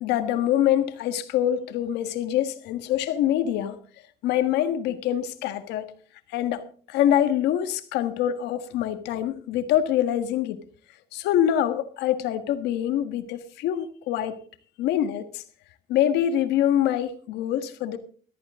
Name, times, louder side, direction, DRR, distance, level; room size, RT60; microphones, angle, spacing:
voice 1, 0.0-3.8 4.2-5.9 6.3-6.6 6.9-10.6 11.1-14.4 14.8-15.4 15.9-18.0, left 11 dB, 85° left, 1.6 m, -25 dB
14.5 x 13.5 x 3.6 m
cardioid pair, 110°, 17 cm